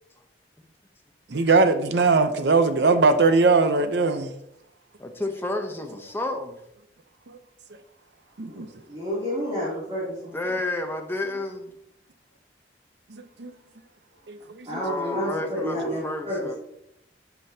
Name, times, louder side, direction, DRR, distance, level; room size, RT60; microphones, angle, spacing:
voice 1, 1.3-4.3 7.3-7.4 8.4-8.7 13.1-13.5 14.3-14.8, right 3 dB, 70° right, 0.7 m, -21 dB
voice 2, 5.0-6.6 10.3-11.7 14.7-16.5, left 2 dB, 15° left, 0.8 m, -31 dB
voice 3, 8.4-10.3 14.6-16.5, equal, 25° right, 2.9 m, -30 dB
8.4 x 6.1 x 2.8 m
head